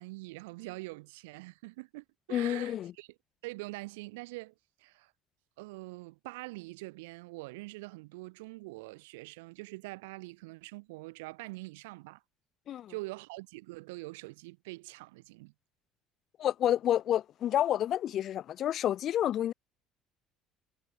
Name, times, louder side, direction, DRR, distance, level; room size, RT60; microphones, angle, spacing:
voice 1, 0.0-3.1 3.4-4.5 4.8-5.1 5.6-12.2 12.9-15.5, right 23 dB, 85° right, 0.6 m, -44 dB
voice 2, 2.3-2.9 12.7-12.9 16.4-19.5, left 11 dB, 55° left, 0.5 m, -29 dB
hypercardioid pair, 75°, 0 cm